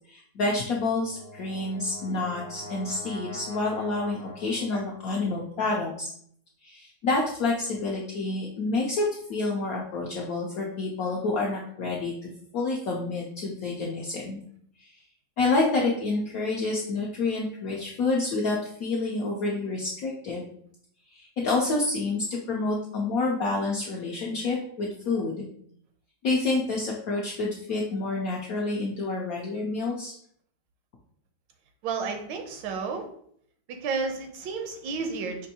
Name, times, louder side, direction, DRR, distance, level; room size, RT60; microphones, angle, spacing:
voice 1, 0.1-6.1 6.6-14.4 14.8-14.9 15.4-20.4 21.1-25.5 26.2-30.1, left 3 dB, 70° left, -2 dB, 0.8 m, -28 dB
Brass instrument, 0.7-5.0, left 1 dB, 45° left, 0.9 m, -43 dB
voice 2, 31.8-33.0 33.8-35.5, right 4 dB, 80° right, 5 dB, 1.3 m, -31 dB
5.1 x 2.6 x 2.7 m, 0.64 s
omnidirectional pair, 2.1 m